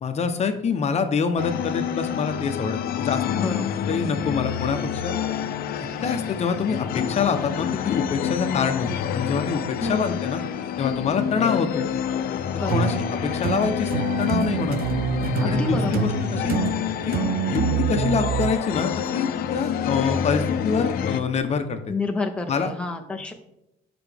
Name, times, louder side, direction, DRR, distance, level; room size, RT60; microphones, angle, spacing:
voice 1, 0.0-3.6 3.9-5.1 5.8-10.4 10.8-11.9 12.7-13.0 13.2-14.8 15.4-16.5 17.0-17.2 17.5-21.8 22.5-22.7, left 5 dB, 40° left, 7 dB, 0.8 m, -26 dB
sound 1, 1.4-21.2, left 9 dB, 65° left, 0.6 m, -28 dB
voice 2, 3.4-3.8 9.8-10.1 12.6-13.0 15.4-16.1 21.9-23.3, left 3 dB, 5° left, 3 dB, 0.7 m, -29 dB
sound 2, 12.7-18.5, right 9 dB, 65° right, 0.5 m, -26 dB
7.9 x 5.9 x 3.4 m, 0.85 s
cardioid pair, 110°, 17 cm